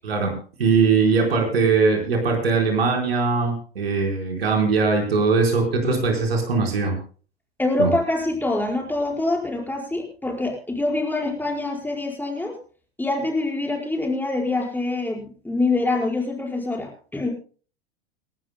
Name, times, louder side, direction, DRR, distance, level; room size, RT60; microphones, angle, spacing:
voice 1, 0.6-7.0 7.8-7.9, right 4 dB, 70° right, 2 dB, 4.4 m, -20 dB
voice 2, 7.6-12.5 13.0-17.3, left 2 dB, 5° left, -1 dB, 5.0 m, -25 dB
29.0 x 12.0 x 2.2 m, 0.40 s
figure-of-eight pair, 85°, 32 cm